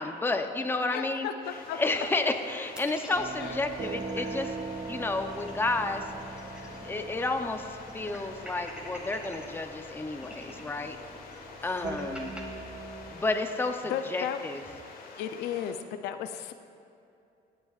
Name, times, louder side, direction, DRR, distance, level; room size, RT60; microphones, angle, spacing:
voice 1, 0.0-1.3 1.7-6.0 6.8-11.0 11.6-12.4 13.1-14.6, left 2 dB, 15° left, 6 dB, 0.7 m, -31 dB
voice 2, 0.9-1.8 3.4-3.6 11.6-11.7 13.9-14.4 15.2-16.5, left 9 dB, 85° left, 8 dB, 0.6 m, -34 dB
sound 1, 1.4-15.7, left 4 dB, 60° left, 1.5 m, -47 dB
sound 2, 2.8-4.5 4.9-5.0 5.2-7.0 7.3-7.4 7.9-9.5 10.1-12.4, equal, 5° right, 1.9 m, -46 dB
sound 3, 3.1-13.1, right 3 dB, 35° right, 1.0 m, -41 dB
17.5 x 9.3 x 2.5 m, 2.6 s
cardioid pair, 110°, 17 cm